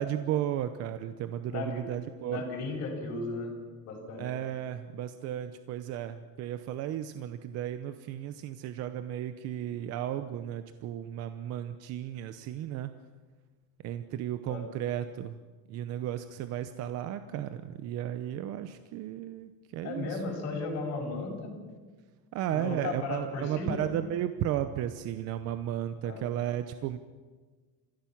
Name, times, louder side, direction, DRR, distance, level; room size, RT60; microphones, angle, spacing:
voice 1, 0.0-2.4 4.2-12.9 13.8-15.4 15.7-20.2 22.3-27.0, right 11 dB, 45° right, 10 dB, 0.8 m, -34 dB
voice 2, 1.5-1.8 2.3-3.5 3.9-4.2 14.5-14.6 19.8-21.5 22.6-23.8 26.0-26.2, left 3 dB, 50° left, 0 dB, 5.9 m, -35 dB
27.5 x 15.5 x 6.0 m, 1.4 s
cardioid pair, 170°, 34 cm